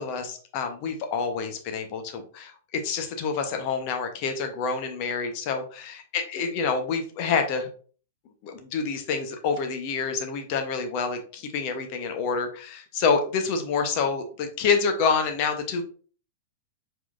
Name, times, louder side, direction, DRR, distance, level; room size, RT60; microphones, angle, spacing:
voice 1, 0.0-7.7 8.4-15.8, left 5 dB, 45° left, 6 dB, 1.0 m, -27 dB
4.7 x 3.8 x 2.6 m, 0.42 s
figure-of-eight pair, 105°, 0 cm